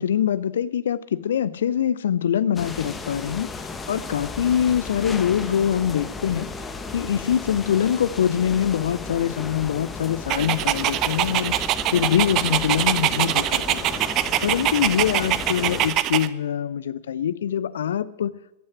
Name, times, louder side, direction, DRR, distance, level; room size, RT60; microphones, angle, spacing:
voice 1, 0.0-3.5 3.9-6.5 6.9-14.0 14.4-18.4, left 9 dB, 65° left, 0.5 m, -24 dB
sound 1, 2.6-15.9, left 4 dB, 15° left, 1.3 m, -35 dB
Dog, 10.3-16.3, right 13 dB, 35° right, 0.6 m, -24 dB
14.5 x 8.8 x 8.2 m
figure-of-eight pair, 90°, 0 cm